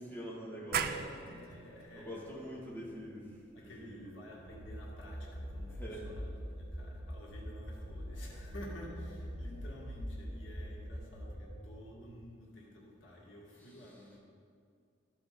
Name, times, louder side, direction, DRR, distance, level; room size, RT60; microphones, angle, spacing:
voice 1, 0.0-0.9 1.9-4.1 5.8-6.1 13.7-13.8, equal, 10° left, -8 dB, 2.2 m, -45 dB
voice 2, 0.7-2.5 3.5-14.2, left 1 dB, 90° left, -4 dB, 1.8 m, -51 dB
sound 1, 0.7-6.1, right 7 dB, 50° right, 0.4 m, -42 dB
sound 2, 4.5-12.1, equal, 35° right, 2.1 m, -43 dB
13.5 x 5.0 x 3.9 m, 2.3 s
head